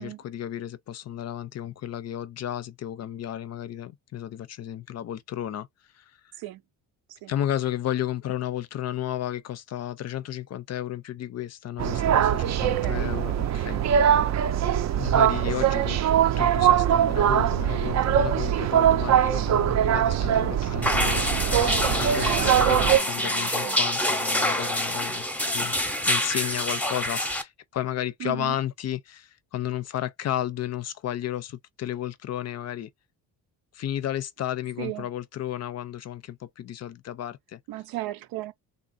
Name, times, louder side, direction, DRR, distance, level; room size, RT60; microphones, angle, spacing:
voice 1, 0.0-5.7 5.9-6.4 7.3-13.9 15.0-16.0 16.4-25.3 25.5-25.8 26.1-32.9 33.7-37.6, left 11 dB, 45° left, 0.5 m, -33 dB
sound 1, 11.8-23.0, right 10 dB, 50° right, 0.5 m, -22 dB
voice 2, 12.6-13.2 22.2-23.8 28.2-28.6 34.8-35.1 37.7-38.5, right 15 dB, 90° right, 0.7 m, -36 dB
sound 2, 20.8-27.4, left 1 dB, 5° left, 0.7 m, -26 dB
3.3 x 2.5 x 4.1 m
cardioid pair, 140°, 36 cm